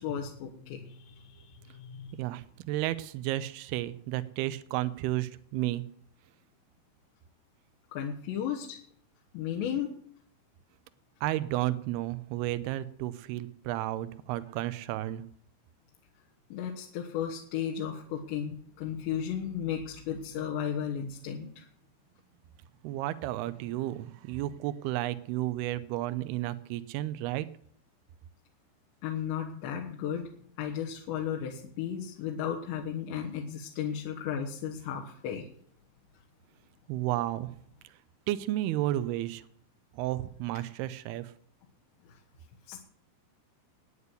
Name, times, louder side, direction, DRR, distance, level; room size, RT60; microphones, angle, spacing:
voice 1, 0.0-2.2 7.9-8.8 9.3-9.9 16.5-21.7 29.0-30.3 30.6-35.5 42.7-42.8, left 8 dB, 75° left, -1 dB, 3.5 m, -35 dB
voice 2, 2.1-5.8 11.2-15.2 22.8-27.5 36.9-37.5 38.3-39.4 39.9-41.3, right 15 dB, 85° right, 13 dB, 2.3 m, -32 dB
11.5 x 9.7 x 8.2 m, 0.64 s
omnidirectional pair, 5.4 m